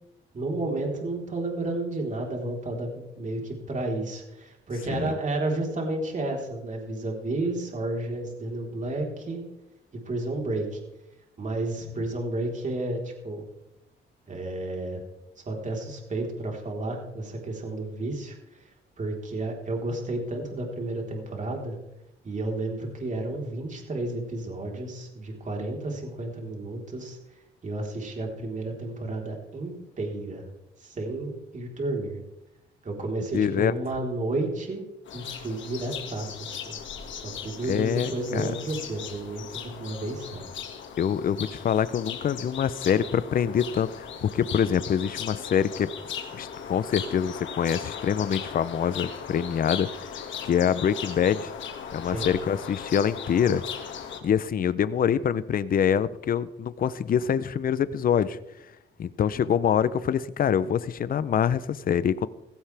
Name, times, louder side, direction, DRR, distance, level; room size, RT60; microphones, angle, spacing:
voice 1, 0.3-9.4 10.1-10.8 11.4-13.5 14.3-15.0 15.5-18.4 19.0-21.7 22.2-27.2 27.6-30.4 30.8-32.2 32.8-34.8 35.1-36.8 37.2-40.4 52.0-52.3, right 2 dB, 40° right, 0 dB, 4.0 m, -32 dB
voice 2, 33.3-33.7 37.7-38.5 41.0-45.9 46.3-51.5 51.9-53.6 54.2-58.4 59.0-62.3, left 8 dB, 45° left, 16 dB, 0.7 m, -25 dB
sound 1, 35.1-54.2, left 7 dB, 70° left, 2.1 m, -38 dB
16.5 x 15.5 x 3.5 m, 0.92 s
cardioid pair, 90°, 20 cm